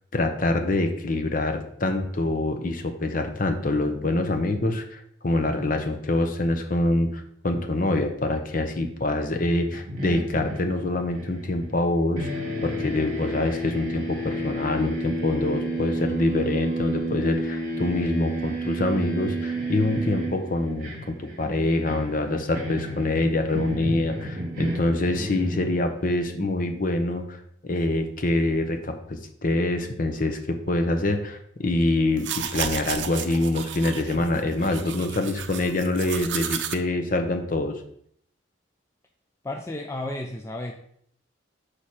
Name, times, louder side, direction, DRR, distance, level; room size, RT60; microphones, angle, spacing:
voice 1, 0.1-12.3 12.6-37.8, left 2 dB, 45° left, 6 dB, 0.8 m, -25 dB
sound 1, 9.7-11.9 12.2-26.1, right 1 dB, 45° right, 1.9 m, -31 dB
sound 2, 32.1-36.7, right 8 dB, 70° right, 0.6 m, -33 dB
voice 2, 39.4-40.7, left 1 dB, 15° left, 2 dB, 0.4 m, -32 dB
6.4 x 4.9 x 4.3 m, 0.67 s
head